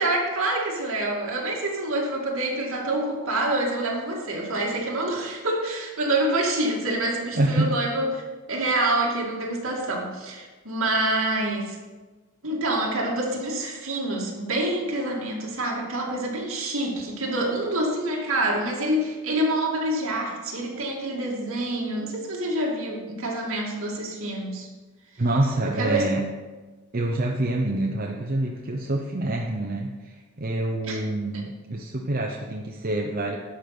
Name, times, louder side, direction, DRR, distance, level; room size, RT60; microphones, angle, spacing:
voice 1, 0.0-8.2 8.5-11.8 12.4-24.7 25.1-25.2 25.7-26.1 30.8-31.0, right 1 dB, 70° right, -2 dB, 2.4 m, -27 dB
voice 2, 7.3-7.8 25.2-26.3 26.9-33.4, right 1 dB, 40° right, 0 dB, 0.8 m, -26 dB
11.5 x 5.3 x 6.0 m, 1.3 s
head